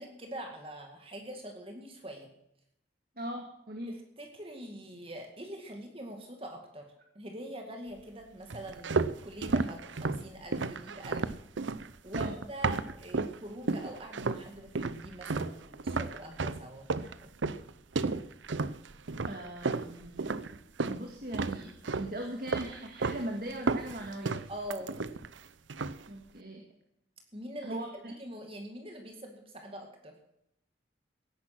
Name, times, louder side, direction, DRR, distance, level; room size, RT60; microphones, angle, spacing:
voice 1, 0.0-2.3 3.9-6.9 7.1-11.3 12.0-17.3 24.5-24.9 27.3-30.1, equal, 30° right, 3 dB, 2.2 m, -44 dB
voice 2, 3.2-3.9 12.1-12.4 19.2-20.6 20.9-24.4 26.1-26.6 27.6-28.1, right 1 dB, 50° right, 2 dB, 2.3 m, -40 dB
sound 1, 8.5-13.4 13.7-14.5 14.8-21.0 21.3-22.1 22.5-23.2 23.5-25.4 25.7-26.1, right 4 dB, 90° right, 0.7 m, -32 dB
17.0 x 10.5 x 6.0 m, 0.77 s
head